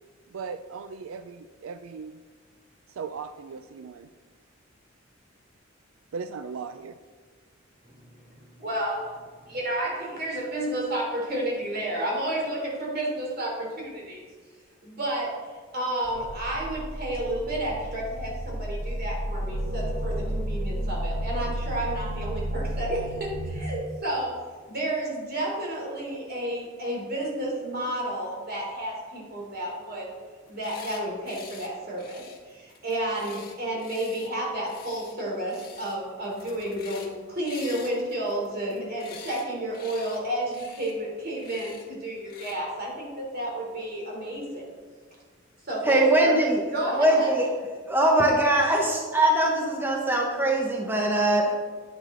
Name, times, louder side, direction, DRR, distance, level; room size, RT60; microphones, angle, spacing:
voice 1, 0.3-2.2 3.0-4.1 6.1-7.0, right 5 dB, 90° right, 10 dB, 0.4 m, -37 dB
voice 2, 8.4-9.2 9.5-14.2 14.8-15.4 15.7-24.3 24.7-30.1 30.5-44.6 45.6-46.3 46.7-47.3, right 1 dB, 50° right, -3 dB, 3.6 m, -31 dB
sound 1, 16.1-23.6, right 1 dB, 25° right, 1.2 m, -32 dB
sound 2, 30.4-31.0 31.3-31.7 32.0-34.3 34.6-35.1 35.5-36.0 36.2-37.1 37.4-39.4 39.7-40.2 40.5-40.9 41.4-41.8 42.2-42.6, left 6 dB, 50° left, 1.8 m, -46 dB
voice 3, 45.8-46.6 46.9-47.4 47.9-51.5, right 1 dB, 10° right, -1 dB, 1.0 m, -22 dB
10.0 x 9.8 x 4.0 m, 1.5 s
head